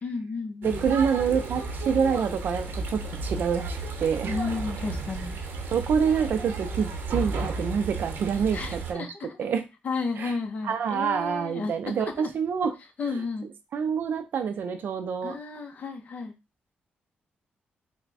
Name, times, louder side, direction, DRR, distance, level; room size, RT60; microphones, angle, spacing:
voice 1, 0.0-0.8 4.3-5.4 8.5-9.4 9.8-11.7 12.2-12.3 13.0-13.5 15.2-16.3, left 4 dB, 45° left, 5 dB, 0.6 m, -32 dB
voice 2, 0.6-4.4 5.7-9.1 9.4-9.7 10.2-10.3 10.6-12.7 13.7-15.4, right 7 dB, 65° right, 8 dB, 0.4 m, -27 dB
sound 1, 0.6-8.9, right 3 dB, 80° right, 0.8 m, -33 dB
3.3 x 2.1 x 3.9 m, 0.26 s
wide cardioid pair, 150°, 4 cm